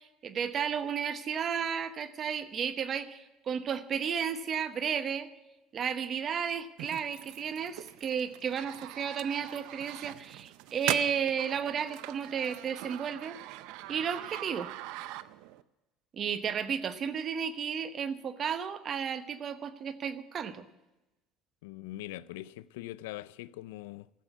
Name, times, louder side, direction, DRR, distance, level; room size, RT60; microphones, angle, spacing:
voice 1, 0.0-5.3 5.7-13.4 13.9-14.7 16.1-20.7, right 7 dB, 45° right, 1.0 m, -33 dB
sound 1, 6.8-15.6, right 16 dB, 75° right, 0.5 m, -41 dB
voice 2, 21.6-24.1, left 16 dB, 85° left, 0.4 m, -42 dB
13.5 x 8.0 x 8.0 m
supercardioid pair, 85°, 0 cm